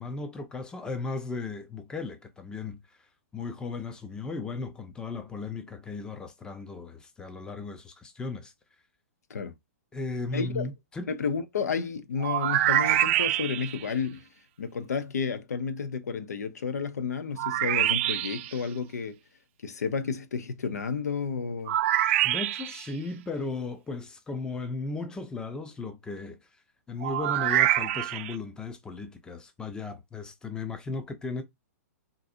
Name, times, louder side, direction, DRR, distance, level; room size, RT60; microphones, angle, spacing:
voice 1, 0.0-3.0 3.3-8.5 9.9-11.1 22.2-26.4 26.9-31.4, left 3 dB, 10° left, 0.6 m, -36 dB
voice 2, 10.3-10.7 11.1-14.3 14.6-19.2 19.6-21.8, left 5 dB, 80° left, 0.6 m, -31 dB
sound 1, 12.2-13.8 17.4-18.5 21.7-22.9 27.0-28.3, right 13 dB, 45° right, 0.4 m, -25 dB
3.9 x 2.5 x 2.5 m
hypercardioid pair, 125°, 9 cm